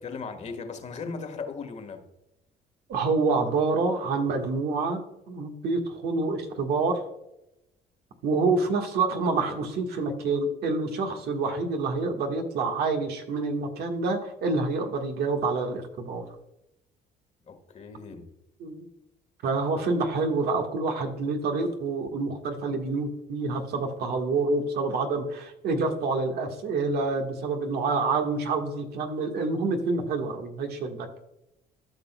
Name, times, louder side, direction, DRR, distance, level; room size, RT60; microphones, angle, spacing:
voice 1, 0.0-2.1 17.5-18.3, left 4 dB, 40° left, 1.4 m, -37 dB
voice 2, 2.9-7.0 8.2-16.2 18.6-18.9 19.4-31.1, right 3 dB, 70° right, 1.5 m, -27 dB
13.5 x 6.0 x 2.2 m
cardioid pair, 110°, 17 cm